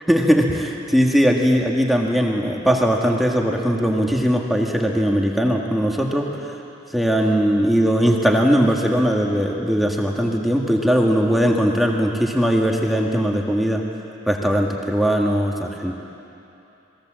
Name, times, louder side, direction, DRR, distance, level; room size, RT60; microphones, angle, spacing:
voice 1, 0.1-6.3 6.9-13.8 14.3-16.0, equal, ahead, -1 dB, 1.8 m, -19 dB
27.5 x 21.0 x 7.7 m, 2.9 s
head